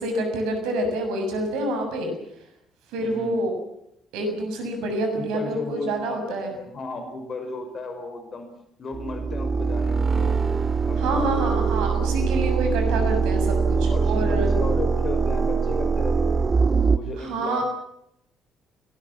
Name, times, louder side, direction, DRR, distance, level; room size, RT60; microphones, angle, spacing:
voice 1, 0.0-2.1 2.9-3.5 4.1-6.5 11.0-14.6 17.2-17.6, right 1 dB, 65° right, 5 dB, 6.6 m, -27 dB
voice 2, 3.0-3.4 5.1-8.4 8.8-10.3 10.9-11.6 13.9-16.4 16.9-17.6, left 3 dB, 45° left, 5 dB, 5.9 m, -34 dB
sound 1, 8.9-17.0, right 5 dB, 35° right, 1.4 m, -22 dB
29.0 x 20.0 x 7.3 m, 0.77 s
figure-of-eight pair, 45°, 0 cm